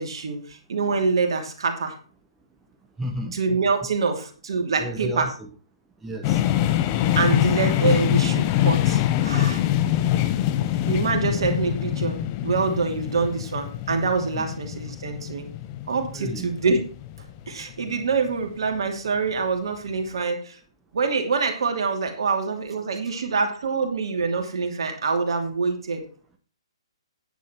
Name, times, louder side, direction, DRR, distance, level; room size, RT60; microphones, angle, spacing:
voice 1, 0.0-2.0 3.3-5.3 7.2-9.6 10.9-15.5 15.9-16.8 17.5-20.6 20.9-26.0, right 4 dB, 55° right, 4 dB, 2.8 m, -25 dB
voice 2, 3.0-3.4 4.8-5.5 6.0-6.4 14.3-14.4 16.1-16.5, right 1 dB, 10° right, 3 dB, 1.2 m, -32 dB
sound 1, 6.2-18.0, left 13 dB, 30° left, 0.9 m, -24 dB
10.0 x 9.5 x 4.4 m, 0.38 s
figure-of-eight pair, 135°, 3 cm